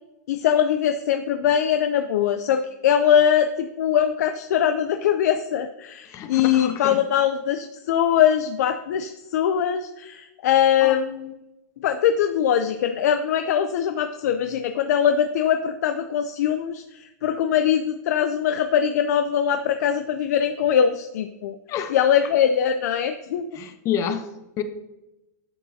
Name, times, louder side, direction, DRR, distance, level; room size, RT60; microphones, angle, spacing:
voice 1, 0.3-3.5 3.8-11.3 11.8-21.5 21.9-23.5, left 9 dB, 75° left, 0.5 m, -22 dB
voice 2, 6.1-7.0 10.8-10.9 21.7-21.9 23.6-24.2 24.6-24.7, left 8 dB, 35° left, 0.8 m, -28 dB
10.5 x 6.3 x 2.7 m
supercardioid pair, 135°, 9 cm